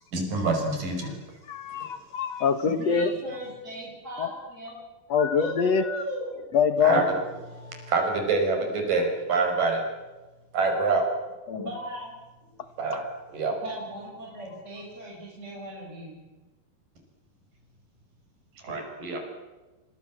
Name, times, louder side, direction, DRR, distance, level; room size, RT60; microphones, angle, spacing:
voice 1, 0.1-1.1 6.8-7.1 7.5-9.8 10.5-11.0 12.8-13.0 13.3-13.5 18.6-19.2, right 3 dB, 55° right, 3 dB, 7.4 m, -26 dB
voice 2, 1.5-3.1 4.2-4.3 5.1-6.0 6.5-7.0 11.5-11.7, left 6 dB, 55° left, 10 dB, 2.2 m, -24 dB
voice 3, 2.7-4.8 5.4-6.4 11.5-12.2 13.6-16.2, equal, 15° right, -3 dB, 7.7 m, -37 dB
29.5 x 25.5 x 7.7 m, 1.2 s
omnidirectional pair, 4.6 m